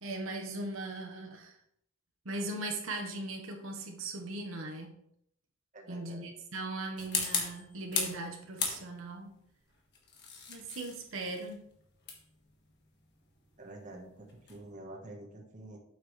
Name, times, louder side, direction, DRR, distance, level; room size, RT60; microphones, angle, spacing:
voice 1, 0.0-1.6 2.2-5.0 5.9-9.4 10.5-11.7, right 2 dB, 80° right, 2 dB, 1.2 m, -39 dB
voice 2, 5.7-6.2 10.5-10.6 13.6-15.8, right 1 dB, 40° right, 1 dB, 1.2 m, -48 dB
sound 1, 7.0-8.2 8.6-9.2 9.9-14.7, left 5 dB, 55° left, 1.5 m, -37 dB
7.9 x 6.1 x 3.2 m, 0.71 s
head